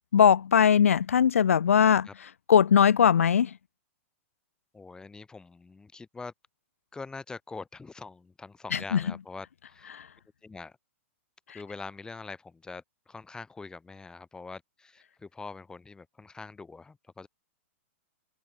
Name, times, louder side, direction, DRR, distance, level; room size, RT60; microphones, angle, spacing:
voice 1, 0.1-2.1 2.5-3.5 8.7-9.0 9.9-10.0, left 8 dB, 80° left, 0.8 m, -20 dB
voice 2, 4.7-6.3 6.9-9.9 10.4-10.7 11.5-17.3, left 4 dB, 10° left, 2.8 m, -44 dB
hypercardioid pair, 120°, 7 cm